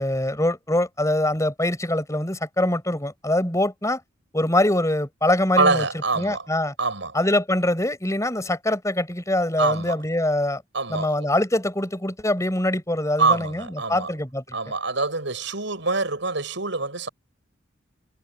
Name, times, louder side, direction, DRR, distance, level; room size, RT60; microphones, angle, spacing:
voice 1, 0.0-4.0 4.3-5.8 6.2-6.7 7.1-10.6 10.9-14.6, left 1 dB, 15° left, 6.1 m, -23 dB
voice 2, 5.6-6.5 6.8-7.2 9.6-10.0 10.7-11.3 13.2-14.1 14.5-17.1, right 3 dB, 70° right, 7.0 m, -25 dB
head